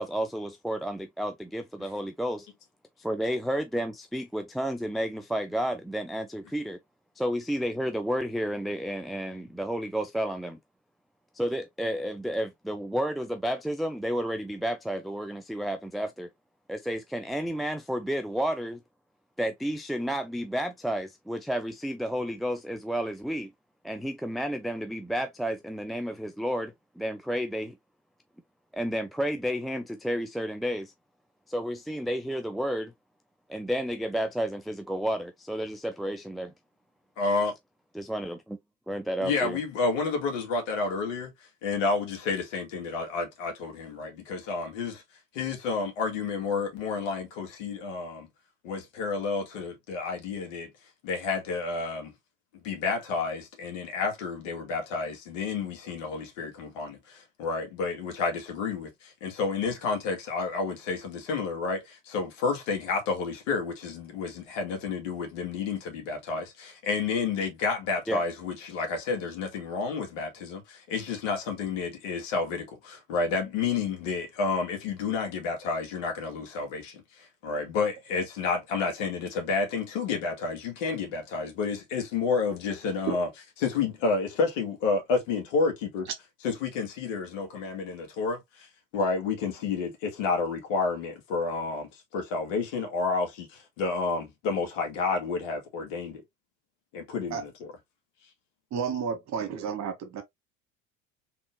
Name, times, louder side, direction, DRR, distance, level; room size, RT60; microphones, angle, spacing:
voice 1, 0.0-2.5 3.0-6.8 7.2-10.6 11.3-16.3 16.7-18.8 19.4-23.5 23.8-27.8 28.7-30.9 31.5-32.9 33.5-36.5 37.9-38.6 38.9-39.6 68.1-68.2, equal, ahead, 0.3 m, -31 dB
voice 2, 37.2-37.5 39.2-41.3 41.6-45.0 45.3-48.3 48.6-50.7 51.0-52.1 52.6-83.3 83.6-86.1 86.4-88.7 88.9-96.2 96.9-97.7, left 4 dB, 70° left, 2.1 m, -30 dB
voice 3, 98.7-100.2, right 6 dB, 45° right, 1.7 m, -31 dB
3.6 x 3.6 x 3.2 m
hypercardioid pair, 70°, 39 cm